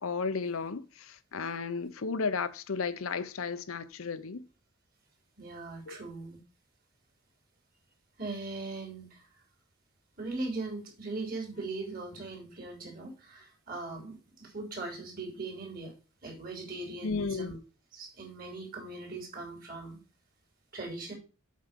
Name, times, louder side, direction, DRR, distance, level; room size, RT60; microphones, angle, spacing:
voice 1, 0.0-4.4 5.9-6.0 17.0-17.5, left 4 dB, 75° left, 0.7 m, -34 dB
voice 2, 5.4-6.4 8.2-9.2 10.2-15.9 16.2-17.6 17.9-20.0 20.7-21.1, right 3 dB, 40° right, 3.2 m, -39 dB
7.4 x 4.7 x 6.6 m
head